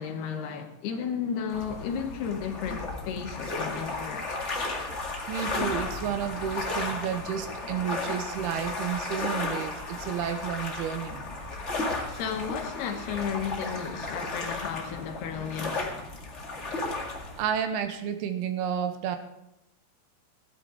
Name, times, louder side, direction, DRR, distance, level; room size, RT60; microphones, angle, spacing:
voice 1, 0.0-4.4 12.1-15.9, left 7 dB, 75° left, 3.2 m, -33 dB
sound 1, 1.5-17.4, left 2 dB, 35° left, 1.1 m, -34 dB
voice 2, 5.3-11.3 17.4-19.2, right 8 dB, 75° right, 2.8 m, -31 dB
16.0 x 10.5 x 4.9 m
omnidirectional pair, 4.8 m